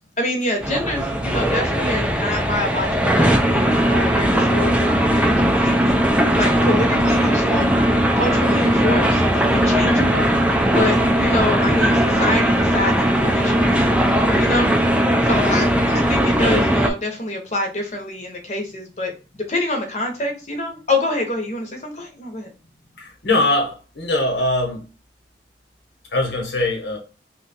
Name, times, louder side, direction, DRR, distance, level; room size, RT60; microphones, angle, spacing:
voice 1, 0.2-5.8 6.4-7.7 8.1-9.2 9.5-10.3 10.7-13.8 14.4-14.7 15.2-22.5, left 1 dB, 40° left, 0.9 m, -26 dB
sound 1, 0.6-16.9, equal, 5° right, 0.3 m, -18 dB
voice 2, 23.0-24.8 26.1-27.0, left 2 dB, 80° left, 1.1 m, -21 dB
3.1 x 2.3 x 4.1 m
head